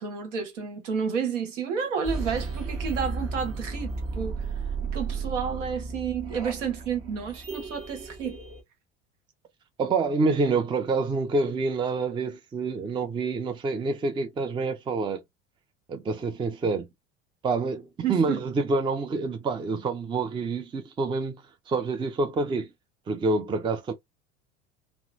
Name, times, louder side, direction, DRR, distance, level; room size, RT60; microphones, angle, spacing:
voice 1, 0.0-4.4 4.9-8.4 18.0-18.4, right 6 dB, 70° right, 1.1 m, -30 dB
sound 1, 2.0-8.6, right 4 dB, 35° right, 1.2 m, -34 dB
voice 2, 9.8-15.2 15.9-16.9 17.4-21.4 21.7-22.7 23.1-23.9, right 3 dB, 15° right, 0.5 m, -27 dB
2.9 x 2.0 x 2.5 m
figure-of-eight pair, 70°, 38 cm